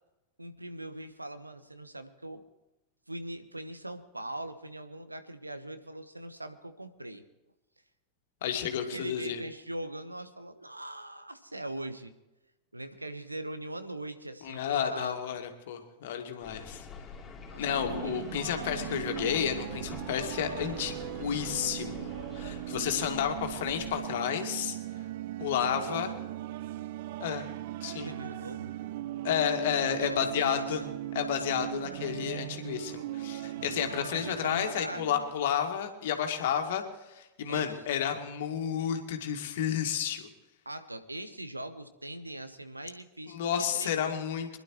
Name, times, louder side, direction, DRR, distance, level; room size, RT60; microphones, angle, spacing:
voice 1, 0.4-2.4 3.1-7.2 8.9-12.1 12.7-15.1 17.5-18.2 18.6-19.3 25.7-26.1 28.0-28.7 30.0-30.9 33.6-35.1 37.5-37.8 40.6-44.2, right 1 dB, 85° right, 10 dB, 1.1 m, -41 dB
voice 2, 8.4-9.4 14.4-16.9 17.6-24.8 25.4-26.1 27.2-27.5 27.8-28.1 29.2-30.8 31.1-36.8 37.1-40.3 43.3-44.5, left 9 dB, 55° left, 5 dB, 2.1 m, -31 dB
sound 1, 16.4-24.0, left 5 dB, 20° left, 3.3 m, -45 dB
sound 2, 17.6-35.3, right 14 dB, 50° right, 0.5 m, -39 dB
25.0 x 11.5 x 3.1 m, 1.0 s
figure-of-eight pair, 90°, 0 cm